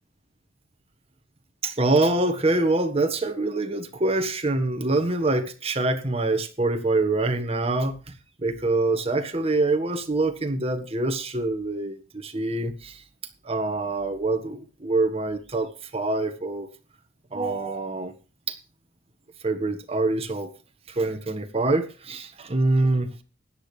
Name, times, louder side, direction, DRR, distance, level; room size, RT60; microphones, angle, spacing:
voice 1, 1.6-8.1 8.4-13.0 13.4-16.7 17.3-18.1 18.5-18.6 19.4-20.5 20.9-23.1, right 2 dB, 30° right, 1.5 m, -25 dB
16.0 x 10.0 x 3.3 m
head